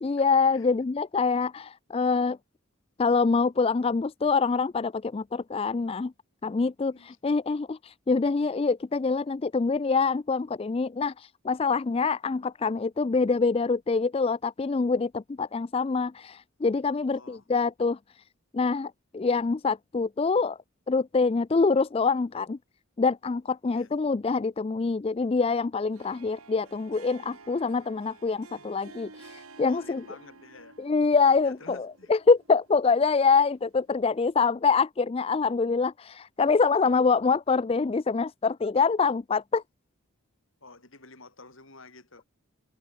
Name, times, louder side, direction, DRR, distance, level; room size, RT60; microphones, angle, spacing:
voice 1, 0.0-2.4 3.0-6.1 6.4-18.0 18.5-20.6 20.9-22.6 23.0-30.0 30.8-39.6, left 4 dB, 25° left, 0.3 m, -25 dB
voice 2, 17.1-17.4 23.7-23.9 28.6-28.7 29.7-30.8 31.4-32.1 40.6-42.3, left 3 dB, 65° left, 5.6 m, -50 dB
Harp, 25.9-34.1, right 3 dB, 85° right, 3.0 m, -52 dB
head